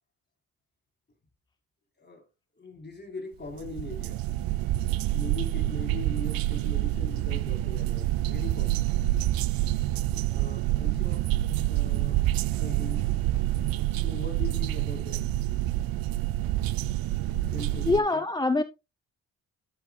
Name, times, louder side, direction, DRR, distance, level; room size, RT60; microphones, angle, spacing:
voice 1, 2.6-4.2 5.1-8.9 10.3-11.3 11.6-12.2 12.6-13.2 13.6-15.3 17.5-18.3, left 3 dB, 30° left, 3.5 m, -41 dB
sound 1, 3.5-18.0, right 15 dB, 90° right, 0.5 m, -27 dB
voice 2, 17.9-18.6, left 3 dB, 15° left, 0.5 m, -24 dB
10.5 x 7.2 x 2.2 m
cardioid pair, 90°, 34 cm